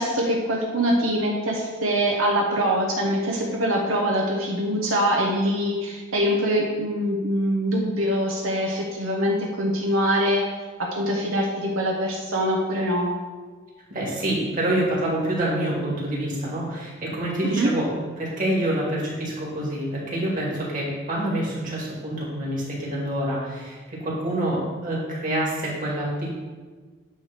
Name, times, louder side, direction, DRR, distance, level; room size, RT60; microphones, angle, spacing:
voice 1, 0.0-10.4 10.9-13.1 17.4-17.7, equal, 85° right, -1 dB, 1.0 m, -24 dB
voice 2, 13.9-17.9 18.2-26.3, right 1 dB, 40° right, -5 dB, 2.4 m, -27 dB
9.4 x 3.4 x 6.0 m, 1.4 s
head